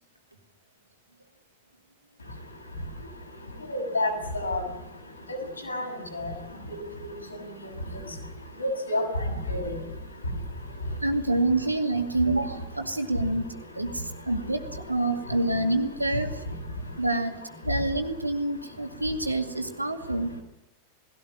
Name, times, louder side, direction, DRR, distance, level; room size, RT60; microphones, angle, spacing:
voice 1, 3.7-4.6 5.7-5.9 6.1-6.3 6.7-6.8 8.6-9.2 9.5-9.7, left 1 dB, 80° left, 2 dB, 6.9 m, -28 dB
voice 2, 11.0-13.5 13.8-14.6 14.9-16.3 17.0-17.3 17.6-20.3, right 2 dB, 85° right, 5 dB, 2.3 m, -27 dB
20.0 x 17.0 x 10.0 m, 0.92 s
figure-of-eight pair, 90°, 0 cm